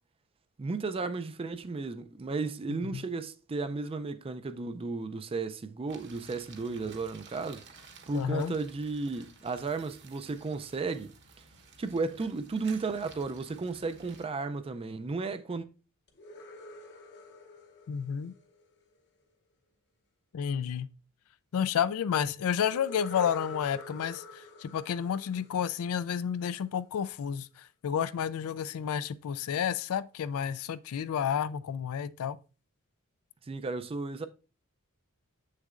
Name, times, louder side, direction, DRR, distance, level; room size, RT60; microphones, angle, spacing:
voice 1, 0.6-7.6 8.1-11.1 11.8-15.6 33.5-34.3, right 3 dB, 25° right, 0.4 m, -34 dB
voice 2, 2.7-3.0 8.1-8.5 17.9-18.3 20.3-20.9 21.5-32.4, left 8 dB, 65° left, 0.3 m, -31 dB
sound 1, 5.9-14.3, right 4 dB, 55° right, 1.1 m, -54 dB
sound 2, 16.1-19.0 22.7-26.4, left 1 dB, 50° left, 0.8 m, -47 dB
7.4 x 6.5 x 2.4 m
head